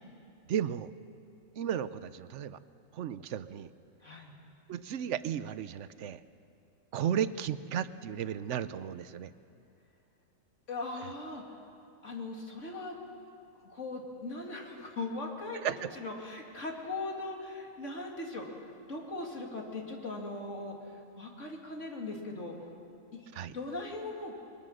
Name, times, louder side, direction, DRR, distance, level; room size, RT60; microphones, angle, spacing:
voice 1, 0.5-0.9 1.6-2.6 2.9-3.7 4.7-6.2 6.9-9.3 15.6-15.9 23.3-23.6, right 9 dB, 65° right, 14 dB, 0.9 m, -34 dB
voice 2, 10.7-11.4 12.0-12.9 13.6-22.5 23.1-23.3 23.5-24.3, left 2 dB, 60° left, 0 dB, 2.9 m, -39 dB
22.5 x 21.5 x 6.5 m, 2.6 s
omnidirectional pair, 1.4 m